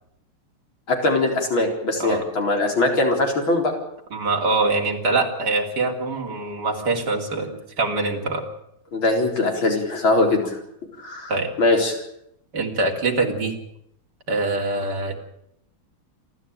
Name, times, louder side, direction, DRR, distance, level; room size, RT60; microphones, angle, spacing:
voice 1, 0.9-3.7 8.9-10.6 11.0-11.3 11.6-12.0, left 2 dB, 70° left, 2 dB, 5.0 m, -21 dB
voice 2, 4.1-8.4 11.3-11.5 12.5-13.6 14.3-15.1, right 3 dB, 50° right, 1 dB, 3.7 m, -24 dB
28.0 x 12.5 x 9.0 m, 0.76 s
omnidirectional pair, 2.2 m